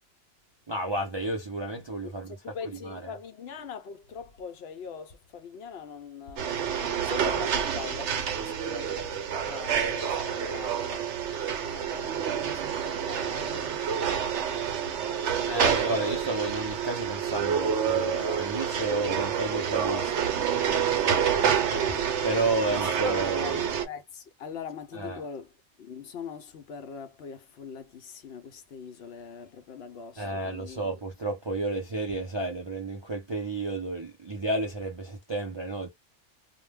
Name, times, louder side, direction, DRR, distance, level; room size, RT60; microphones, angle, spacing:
voice 1, 0.7-2.4 2.8-3.0 15.5-20.3 21.5-21.6 22.2-23.7 24.9-25.2 30.2-35.9, right 2 dB, 40° right, 0.4 m, -31 dB
voice 2, 2.0-11.2 11.6-15.7 21.4-22.1 22.7-25.5 25.8-30.8, left 6 dB, 65° left, 0.7 m, -42 dB
sound 1, 6.4-23.8, right 8 dB, 70° right, 0.9 m, -28 dB
2.2 x 2.1 x 3.3 m
omnidirectional pair, 1.2 m